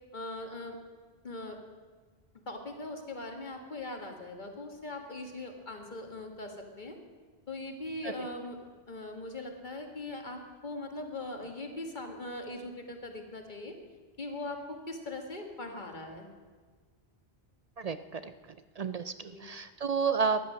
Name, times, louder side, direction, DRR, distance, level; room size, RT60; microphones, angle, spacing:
voice 1, 0.1-0.8 1.2-1.6 2.5-7.0 7.5-8.6 8.9-13.8 14.2-16.3 19.3-19.5, left 2 dB, 50° left, 4 dB, 1.8 m, -40 dB
voice 2, 17.8-20.4, right 5 dB, 50° right, 12 dB, 0.5 m, -32 dB
14.5 x 10.5 x 6.3 m, 1.5 s
omnidirectional pair, 1.1 m